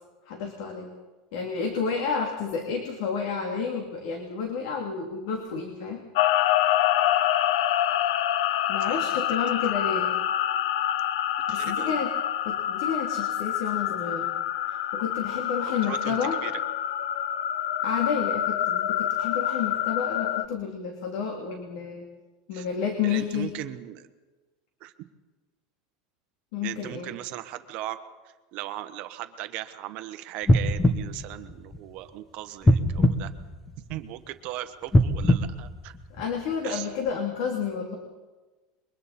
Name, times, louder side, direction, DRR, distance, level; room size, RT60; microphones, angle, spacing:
voice 1, 0.3-0.9 1.3-6.0 8.7-10.1 11.5-12.1 12.4-14.3 14.7-16.4 17.8-22.1 22.5-23.5 26.5-27.1 36.1-37.9, left 6 dB, 65° left, 3 dB, 2.8 m, -30 dB
sound 1, 6.1-20.5, left 12 dB, 85° left, 0.7 m, -26 dB
voice 2, 11.5-12.0 15.7-16.2 16.4-16.5 22.5-22.7 23.0-24.1 24.8-24.9 26.6-28.0 28.5-33.3 33.9-35.9 36.6-36.9, right 14 dB, 45° right, 9 dB, 1.2 m, -38 dB
sound 2, 30.4-32.1 32.6-34.2 34.8-36.5 37.1-37.2, left 1 dB, 10° left, 1.0 m, -23 dB
27.5 x 23.0 x 4.3 m, 1.2 s
supercardioid pair, 170°, 3 cm